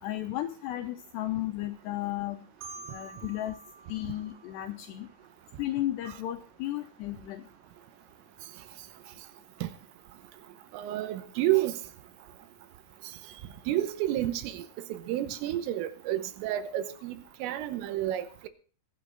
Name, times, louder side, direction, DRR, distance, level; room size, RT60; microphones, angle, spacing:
voice 1, 0.0-2.4 2.9-3.6 3.9-5.1 5.6-7.5, left 14 dB, 85° left, 2.5 m, -34 dB
Marimba xylophone, 2.6-5.5, right 4 dB, 70° right, 4.2 m, -49 dB
voice 2, 10.7-11.8 13.7-14.6 14.9-18.5, right 14 dB, 90° right, 3.5 m, -30 dB
22.5 x 8.7 x 4.0 m
omnidirectional pair, 5.8 m